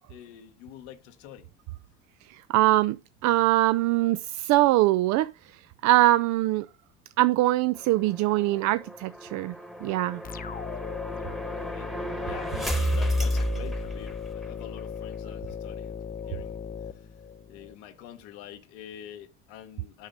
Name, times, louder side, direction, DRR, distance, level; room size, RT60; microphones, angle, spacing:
voice 1, 0.1-1.5 4.6-4.7 11.4-16.0 16.3-16.6 16.9-17.1 17.5-20.1, left 10 dB, 75° left, 1.1 m, -46 dB
voice 2, 2.3-3.0 3.2-6.7 7.2-9.6 9.8-10.2, right 16 dB, 55° right, 0.4 m, -23 dB
sound 1, 7.8-14.5, equal, ahead, 1.2 m, -32 dB
sound 2, 10.2-17.7, left 7 dB, 25° left, 0.5 m, -37 dB
9.2 x 5.2 x 3.8 m
hypercardioid pair, 75°, 34 cm